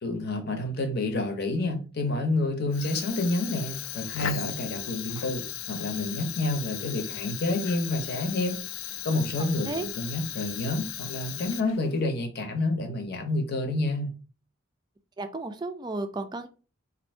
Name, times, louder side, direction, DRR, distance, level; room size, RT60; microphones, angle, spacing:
voice 1, 0.0-8.6 9.0-14.1, left 2 dB, 50° left, 0.8 m, -29 dB
Fire, 2.7-12.0, left 11 dB, 75° left, 0.4 m, -37 dB
voice 2, 15.2-16.5, right 2 dB, 20° right, 0.3 m, -33 dB
2.6 x 2.6 x 4.3 m
head